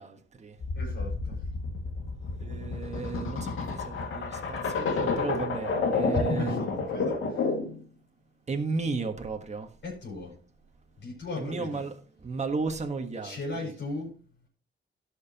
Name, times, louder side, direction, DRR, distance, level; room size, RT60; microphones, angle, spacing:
voice 1, 0.0-0.6 2.4-6.6 8.5-9.8 11.4-13.7, right 4 dB, 35° right, 1.4 m, -34 dB
sound 1, 0.6-7.8, left 4 dB, 90° left, 2.2 m, -30 dB
voice 2, 0.8-1.4 6.1-7.5 9.8-10.3 11.0-11.9 13.2-14.1, left 3 dB, 70° left, 5.3 m, -35 dB
17.5 x 6.6 x 2.9 m
wide cardioid pair, 120°, 20 cm